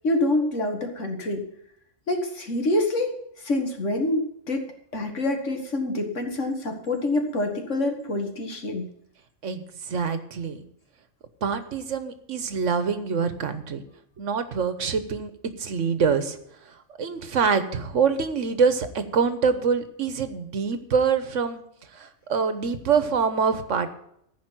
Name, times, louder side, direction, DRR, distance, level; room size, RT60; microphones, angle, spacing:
voice 1, 0.0-1.4 2.1-3.1 3.4-4.6 4.9-8.8, left 2 dB, 80° left, 4 dB, 2.3 m, -26 dB
voice 2, 9.4-10.6 11.4-13.8 14.2-15.3 15.6-16.4 17.0-21.6 21.9-23.9, right 5 dB, 80° right, 11 dB, 1.5 m, -25 dB
15.0 x 5.2 x 9.1 m, 0.74 s
omnidirectional pair, 1.2 m